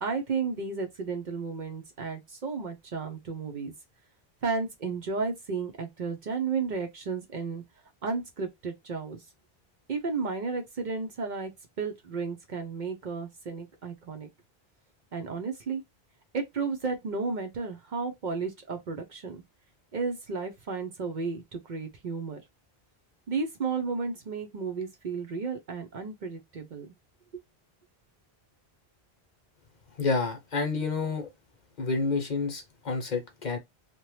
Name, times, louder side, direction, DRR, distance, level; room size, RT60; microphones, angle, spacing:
voice 1, 0.0-3.7 4.4-7.6 8.0-9.2 9.9-11.5 11.8-14.3 15.1-15.8 16.3-19.4 19.9-22.4 23.3-26.9, right 4 dB, 55° right, 0.7 m, -33 dB
voice 2, 30.0-31.3 31.8-33.6, left 4 dB, 50° left, 0.8 m, -29 dB
2.8 x 2.2 x 3.0 m
omnidirectional pair, 1.0 m